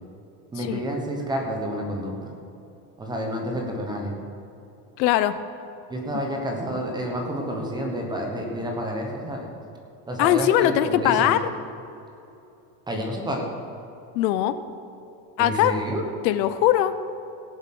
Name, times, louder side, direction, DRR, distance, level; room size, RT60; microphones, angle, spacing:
voice 1, 0.5-2.3 3.0-4.1 5.9-9.5 10.1-11.4 12.9-13.5 15.4-16.0, equal, 10° right, 1 dB, 1.1 m, -29 dB
voice 2, 5.0-5.4 10.2-11.4 14.1-14.6 15.4-15.7 16.2-16.9, left 12 dB, 90° left, 12 dB, 0.9 m, -20 dB
17.0 x 7.5 x 6.0 m, 2.7 s
cardioid pair, 180°, 49 cm